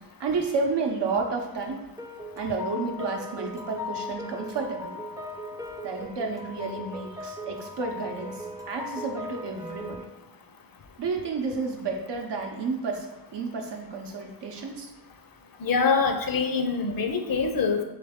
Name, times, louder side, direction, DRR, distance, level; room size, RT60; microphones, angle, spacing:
voice 1, 0.2-1.9 2.4-5.0 5.8-10.0 11.0-13.1 13.3-14.9, right 4 dB, 70° right, 2 dB, 0.7 m, -31 dB
sound 1, 2.0-10.0, left 2 dB, 10° right, 0.4 m, -38 dB
voice 2, 15.6-17.8, left 5 dB, 55° left, 5 dB, 0.5 m, -24 dB
3.3 x 3.2 x 3.5 m, 1.0 s
wide cardioid pair, 70°, 43 cm